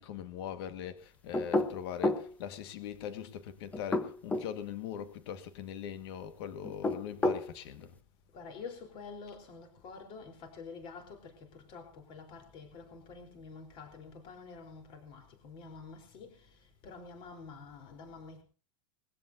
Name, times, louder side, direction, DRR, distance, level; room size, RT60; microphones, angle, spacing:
voice 1, 0.0-7.9, left 9 dB, 55° left, 1.9 m, -41 dB
sound 1, 1.3-2.3 3.7-4.5 6.6-7.5, left 2 dB, 10° left, 1.0 m, -30 dB
voice 2, 8.3-16.5 16.8-18.4, left 4 dB, 35° left, 4.2 m, -48 dB
21.0 x 16.0 x 2.8 m
supercardioid pair, 165°, 16 cm